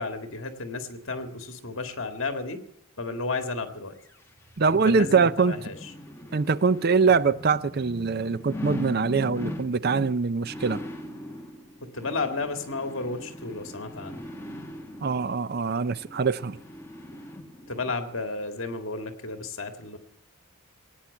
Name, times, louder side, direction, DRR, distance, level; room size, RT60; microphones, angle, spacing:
voice 1, 0.0-2.6 3.0-3.9 4.7-5.9 11.8-14.2 17.7-20.0, left 3 dB, 60° left, 1.9 m, -33 dB
sound 1, 4.0-17.9 18.4-18.5, left 1 dB, 10° left, 1.5 m, -40 dB
voice 2, 4.6-5.6 6.3-10.8 15.0-16.6, right 5 dB, 45° right, 0.5 m, -23 dB
17.5 x 9.1 x 8.3 m
head